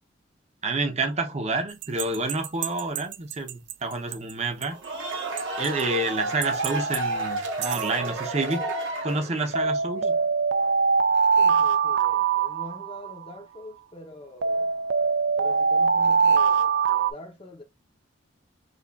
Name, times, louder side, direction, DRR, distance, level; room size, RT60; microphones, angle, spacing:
voice 1, 0.6-4.8 5.6-8.7 9.0-10.1, right 2 dB, 35° right, 0.7 m, -28 dB
sound 1, 1.8-3.7 4.1-4.2 4.6-4.7 5.4-5.8 6.4-7.0 7.4-7.8 9.5-13.3 14.4-17.1, right 5 dB, 60° right, 0.4 m, -23 dB
sound 2, 4.6-9.7, right 2 dB, 85° right, 1.4 m, -31 dB
voice 2, 11.4-14.7 15.4-17.6, left 1 dB, 30° left, 0.8 m, -44 dB
5.1 x 2.4 x 2.4 m
head